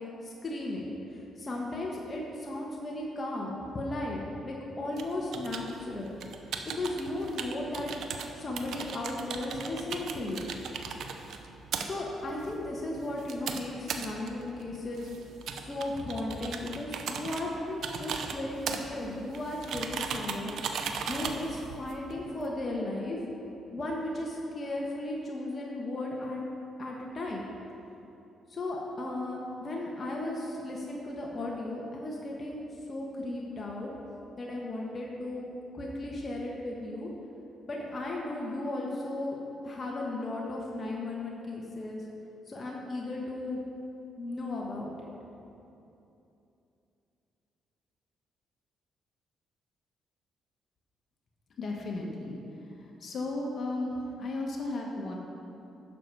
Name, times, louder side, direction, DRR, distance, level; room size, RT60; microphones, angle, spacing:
voice 1, 0.0-6.1 6.7-7.9 8.3-10.5 11.9-15.1 15.7-20.6 21.1-23.2 23.7-26.4 26.8-27.5 28.5-33.9 34.4-35.5 35.7-37.1 37.7-39.4 39.6-42.0 42.5-43.6 44.2-45.1, left 2 dB, 30° left, -3 dB, 1.3 m, -35 dB
sound 1, 4.9-22.5, right 6 dB, 70° right, 0.7 m, -38 dB
voice 2, 51.6-52.4 52.8-55.1, left 2 dB, 55° left, -1 dB, 1.5 m, -34 dB
10.5 x 6.7 x 4.8 m, 2.8 s
cardioid pair, 90°, 0 cm